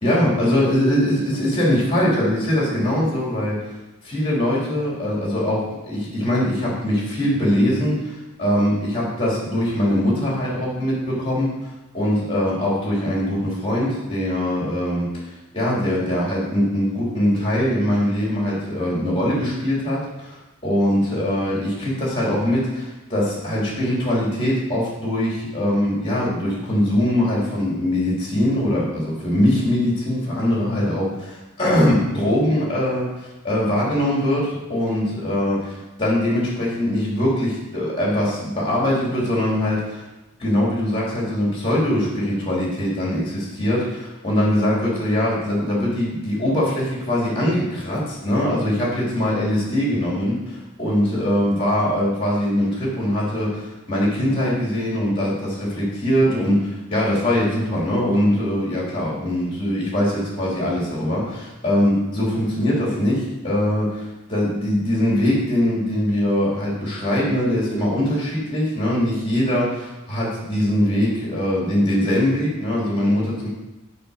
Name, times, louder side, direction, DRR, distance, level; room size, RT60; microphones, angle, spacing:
voice 1, 0.0-3.6 4.0-11.5 11.9-34.4 34.7-40.0 40.4-73.5, left 1 dB, 25° left, -5 dB, 3.1 m, -22 dB
6.8 x 5.1 x 6.5 m, 1.0 s
head